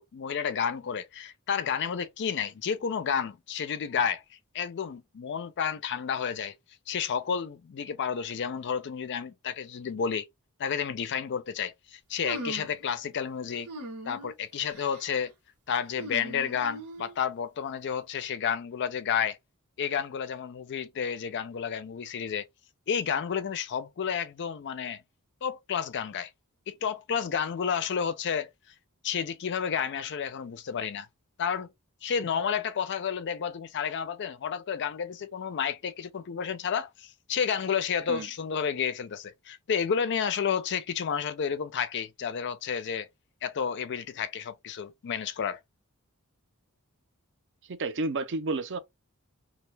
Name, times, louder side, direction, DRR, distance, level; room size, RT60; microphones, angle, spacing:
voice 1, 0.0-4.2 4.5-6.6 6.9-10.3 10.6-13.7 14.0-15.3 15.7-19.4 19.8-22.5 22.9-25.0 25.4-26.3 26.7-28.5 29.0-31.1 31.4-31.7 32.0-43.1 43.4-45.6, left 7 dB, 50° left, 0.4 m, -31 dB
sound 1, 12.2-12.8 13.7-14.3 14.7-15.1 15.9-17.1, right 1 dB, 90° right, 1.2 m, -40 dB
voice 2, 47.7-48.8, right 3 dB, 55° right, 0.5 m, -31 dB
2.3 x 2.2 x 3.2 m
head